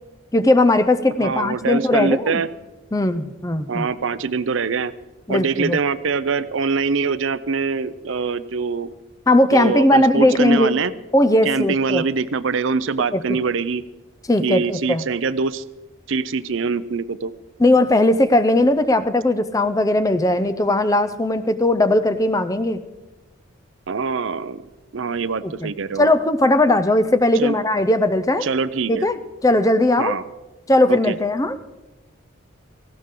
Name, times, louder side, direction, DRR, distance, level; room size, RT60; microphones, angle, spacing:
voice 1, 0.3-2.4 2.9-3.9 5.3-5.8 9.3-10.7 11.1-12.0 13.1-13.4 14.3-15.1 17.6-22.8 25.4-25.7 26.0-28.5 28.9-30.2 30.7-31.6, left 1 dB, 15° left, 11 dB, 0.5 m, -18 dB
voice 2, 1.2-2.5 3.7-4.9 5.3-8.9 9.5-10.9 11.4-13.8 14.4-15.6 16.1-17.3 23.9-24.6 24.9-26.1 27.4-27.6 28.4-29.1 30.0-30.2 30.9-31.2, right 5 dB, 65° right, 15 dB, 0.6 m, -23 dB
17.5 x 16.0 x 3.8 m, 1.1 s
head